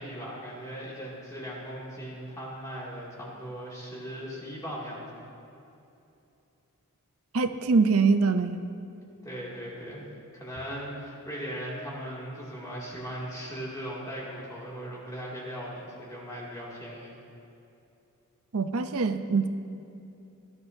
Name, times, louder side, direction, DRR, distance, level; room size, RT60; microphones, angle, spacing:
voice 1, 0.0-5.2 9.2-10.0 10.3-17.2, equal, 15° left, -6 dB, 2.3 m, -38 dB
voice 2, 7.3-8.6 18.5-19.5, right 4 dB, 65° right, 9 dB, 0.6 m, -24 dB
19.5 x 12.0 x 2.7 m, 2.7 s
head